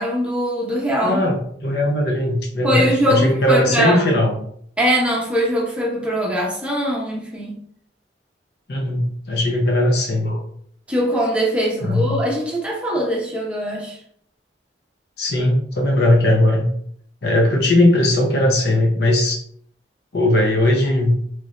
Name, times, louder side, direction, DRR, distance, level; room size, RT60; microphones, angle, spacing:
voice 1, 0.0-1.2 2.6-4.2 4.8-7.6 10.9-14.0, equal, 5° right, -3 dB, 0.8 m, -21 dB
voice 2, 1.0-4.4 8.7-10.4 11.8-12.2 15.2-16.7 17.2-19.4 20.1-21.2, left 1 dB, 60° left, 2 dB, 0.7 m, -18 dB
3.2 x 2.6 x 3.1 m, 0.62 s
head